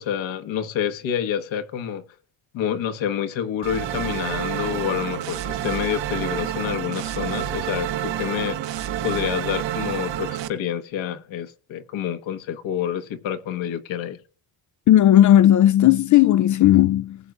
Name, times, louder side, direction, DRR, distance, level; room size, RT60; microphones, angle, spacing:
voice 1, 0.0-2.0 2.5-8.6 9.0-14.2, left 9 dB, 75° left, 1.5 m, -28 dB
sound 1, 3.6-10.5, right 11 dB, 65° right, 1.2 m, -29 dB
voice 2, 14.9-17.2, left 12 dB, 40° left, 0.4 m, -15 dB
19.5 x 7.7 x 2.5 m
cardioid pair, 105°, 47 cm